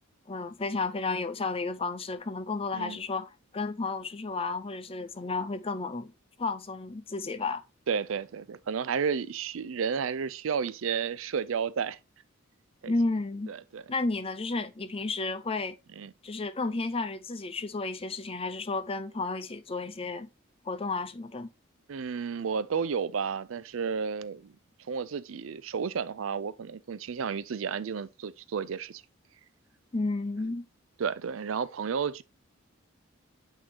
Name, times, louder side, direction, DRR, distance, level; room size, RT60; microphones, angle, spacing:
voice 1, 0.3-6.1 6.4-7.6 12.9-13.5 13.9-15.8 16.2-20.3 20.6-21.5 29.9-30.7, left 3 dB, 30° left, 0.6 m, -32 dB
voice 2, 7.9-12.0 12.8-12.9 13.5-13.8 16.0-16.1 21.9-24.6 24.9-29.0 31.0-32.2, right 6 dB, 70° right, 0.5 m, -32 dB
8.7 x 3.8 x 2.9 m
head